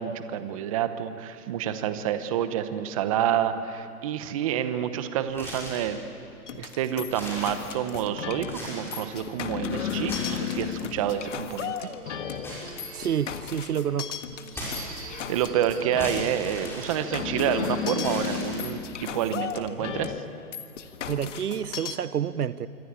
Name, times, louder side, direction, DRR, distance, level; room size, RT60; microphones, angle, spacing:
voice 1, 0.0-6.0 6.5-11.9 15.3-20.1, right 10 dB, 25° right, 0.9 m, -28 dB
sound 1, 5.3-6.0 6.5-6.6 7.0-8.0 8.4-9.1 9.9-10.9 12.4-13.5 14.5-15.3 16.0-17.5 18.0-18.9, equal, 5° left, 5.8 m, -38 dB
sound 2, 6.5-21.9, left 9 dB, 50° left, 1.7 m, -34 dB
sound 3, 9.8-18.1, right 4 dB, 65° right, 6.0 m, -46 dB
voice 2, 12.9-14.2 21.1-22.7, right 9 dB, 85° right, 1.1 m, -29 dB
26.5 x 23.5 x 8.8 m
hypercardioid pair, 160°, 45 cm